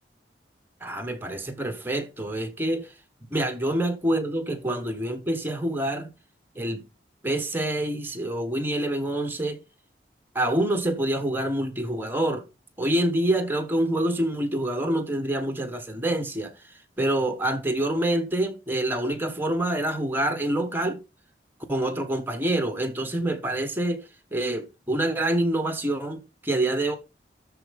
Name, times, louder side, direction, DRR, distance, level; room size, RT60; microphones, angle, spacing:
voice 1, 0.8-2.9 3.3-6.1 6.5-6.8 7.2-9.6 10.3-12.5 12.8-21.0 21.7-24.0 24.3-27.0, right 1 dB, 10° right, 1.4 m, -26 dB
13.0 x 4.7 x 5.4 m
head